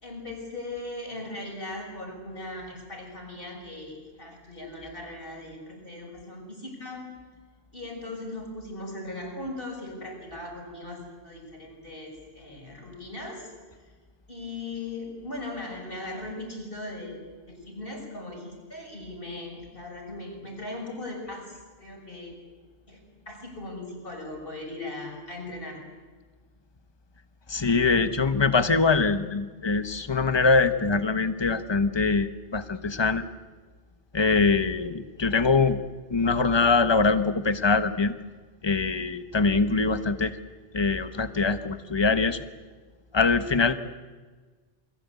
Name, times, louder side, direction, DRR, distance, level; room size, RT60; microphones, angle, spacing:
voice 1, 0.0-7.1 7.7-13.5 13.8-13.9 14.3-22.4 22.9-25.8, left 2 dB, 50° left, 1 dB, 6.5 m, -39 dB
voice 2, 27.5-33.2 34.1-35.8 36.1-38.1 38.6-40.4 40.7-42.4 43.1-43.7, left 4 dB, 25° left, 11 dB, 1.2 m, -23 dB
28.5 x 22.0 x 8.3 m, 1.4 s
omnidirectional pair, 1.2 m